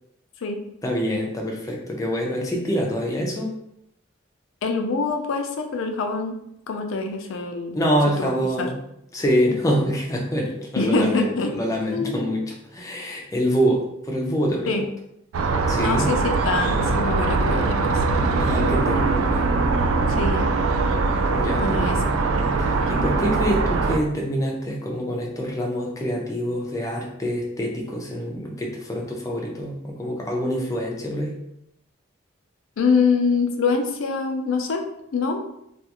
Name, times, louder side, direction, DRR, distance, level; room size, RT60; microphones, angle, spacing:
voice 1, 0.8-3.5 7.7-8.8 9.1-14.8 15.7-16.1 18.4-19.4 21.3-22.0 22.6-31.3, equal, 15° left, -1 dB, 0.4 m, -25 dB
voice 2, 4.6-6.4 6.7-7.7 8.2-8.7 10.8-11.5 11.9-12.4 14.7-14.9 15.8-18.0 20.1-20.5 21.6-22.0 32.8-34.8 35.1-35.4, left 4 dB, 80° left, 4 dB, 0.4 m, -25 dB
sound 1, 15.3-24.0, right 3 dB, 85° right, 0.3 m, -22 dB
2.4 x 2.3 x 2.8 m, 0.79 s
head